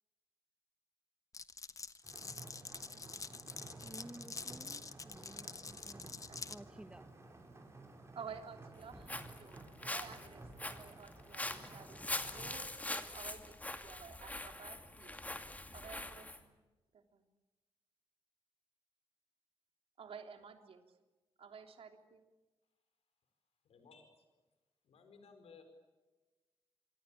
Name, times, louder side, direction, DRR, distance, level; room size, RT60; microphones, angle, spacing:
Glass, 1.3-6.6, left 4 dB, 35° left, 1.3 m, -46 dB
sound 1, 2.0-12.6, right 2 dB, 25° right, 6.2 m, -54 dB
voice 1, 3.8-6.2 6.5-7.1, right 1 dB, 10° right, 1.4 m, -54 dB
voice 2, 5.8-6.5 8.1-12.7 13.1-13.5 13.8-15.2 15.7-16.6 16.9-17.2 20.0-20.8 21.4-22.2, right 6 dB, 70° right, 3.3 m, -52 dB
Walk footsteps, 8.8-16.4, left 2 dB, 15° left, 2.5 m, -43 dB
voice 3, 23.6-24.2 24.8-25.6, left 5 dB, 90° left, 4.7 m, -59 dB
25.5 x 25.5 x 8.7 m
wide cardioid pair, 115°, 10 cm